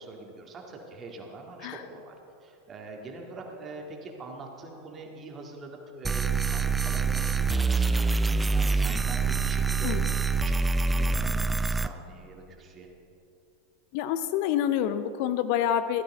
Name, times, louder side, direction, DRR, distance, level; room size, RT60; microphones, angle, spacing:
voice 1, 0.0-2.2 2.4-10.6 10.9-12.9, right 3 dB, 30° right, 1 dB, 2.1 m, -44 dB
sound 1, 6.0-11.9, right 4 dB, 10° right, 0.4 m, -25 dB
voice 2, 13.9-16.0, left 10 dB, 55° left, 12 dB, 0.6 m, -27 dB
17.0 x 12.5 x 3.8 m, 2.8 s
figure-of-eight pair, 85°, 0 cm